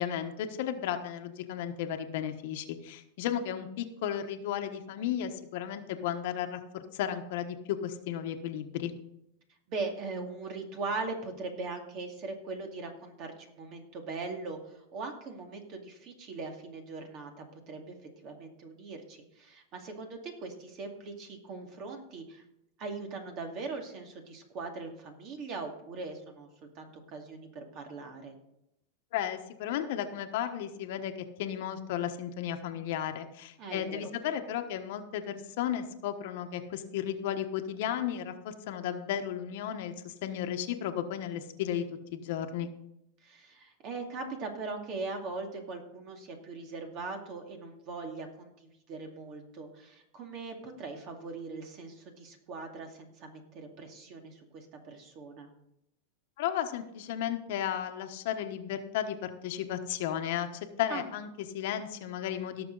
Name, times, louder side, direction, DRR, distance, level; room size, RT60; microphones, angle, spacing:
voice 1, 0.0-8.9 29.1-31.1 31.4-41.8 42.1-42.7 56.4-62.7, left 10 dB, 65° left, 7 dB, 1.2 m, -34 dB
voice 2, 9.7-18.0 18.2-22.4 22.8-26.5 26.8-28.3 33.6-34.1 43.2-55.5 60.9-61.0, right 3 dB, 40° right, 3 dB, 2.3 m, -40 dB
17.5 x 6.6 x 4.0 m, 0.81 s
supercardioid pair, 135°, 0 cm